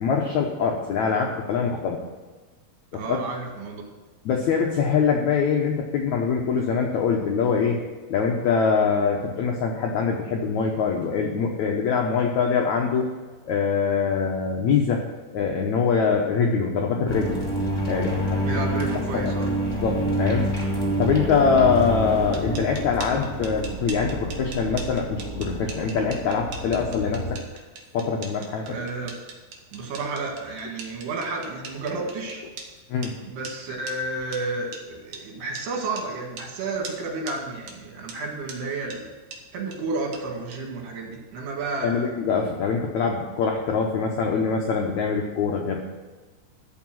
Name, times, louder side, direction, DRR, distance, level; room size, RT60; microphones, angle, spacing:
voice 1, 0.0-2.0 2.9-3.2 4.2-7.8 8.1-13.1 13.5-15.0 15.3-17.4 17.9-18.4 19.8-20.5 21.0-27.4 27.9-28.7 32.9-33.2 41.8-45.8, left 5 dB, 80° left, 1 dB, 1.6 m, -23 dB
voice 2, 2.9-3.8 18.5-19.5 28.6-29.2 29.7-32.4 33.3-39.1 39.5-42.1, right 3 dB, 80° right, 1 dB, 3.8 m, -31 dB
sound 1, 17.1-27.4, right 1 dB, 10° left, 1.8 m, -28 dB
sound 2, 22.2-32.7 33.0-33.1 33.4-33.5 33.9-34.0 34.3-34.4 34.7-34.8 35.1-35.2 35.6-35.7 36.0-36.1 36.4-36.5 36.8-37.0 37.3-37.4 37.7-37.8 38.1-38.2 38.5-38.6 38.9-39.0 39.3-39.4 39.7-39.8 40.1-40.2 40.5-40.6, right 5 dB, 60° right, 2.3 m, -39 dB
13.5 x 4.7 x 7.5 m, 1.3 s
omnidirectional pair, 4.7 m